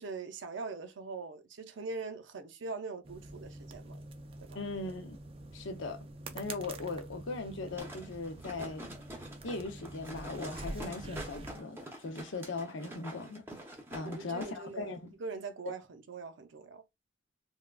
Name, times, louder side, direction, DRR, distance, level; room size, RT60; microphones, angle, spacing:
voice 1, 0.0-4.1 4.4-4.6 14.0-16.8, right 4 dB, 75° right, 0.6 m, -42 dB
sound 1, 3.0-11.6, right 2 dB, 30° right, 0.3 m, -46 dB
voice 2, 4.5-5.2 5.5-6.0 6.3-8.9 9.4-13.5 13.9-15.1, left 3 dB, 75° left, 0.7 m, -39 dB
sound 2, 7.8-14.5 14.9-15.0, right 1 dB, 10° right, 0.7 m, -46 dB
3.4 x 2.3 x 2.3 m
head